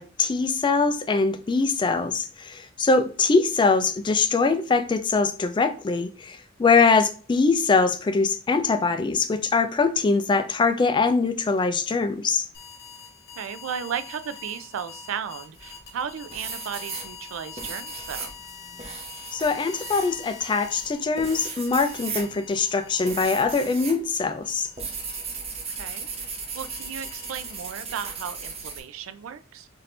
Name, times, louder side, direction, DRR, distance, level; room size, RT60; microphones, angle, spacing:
voice 1, 0.0-12.5 19.3-24.7, left 4 dB, 25° left, 0.3 m, -23 dB
sound 1, 12.5-24.0 24.4-27.8, left 6 dB, 55° left, 1.1 m, -45 dB
voice 2, 13.4-18.3 25.7-26.3 26.5-29.7, right 7 dB, 85° right, 0.4 m, -35 dB
sound 2, 15.5-16.0 16.3-24.0 24.3-28.8, right 4 dB, 30° right, 0.7 m, -36 dB
4.2 x 2.7 x 3.2 m
head